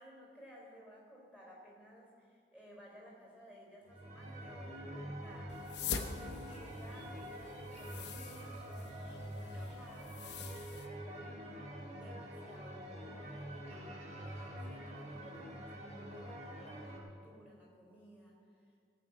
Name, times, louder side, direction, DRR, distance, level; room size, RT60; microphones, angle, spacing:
voice 1, 0.0-18.7, equal, 10° right, -4 dB, 3.8 m, -57 dB
sound 1, 3.9-17.0, equal, 35° right, 1.7 m, -46 dB
sound 2, 5.5-10.9, left 6 dB, 70° left, 0.9 m, -45 dB
15.5 x 5.6 x 8.3 m, 2.2 s
head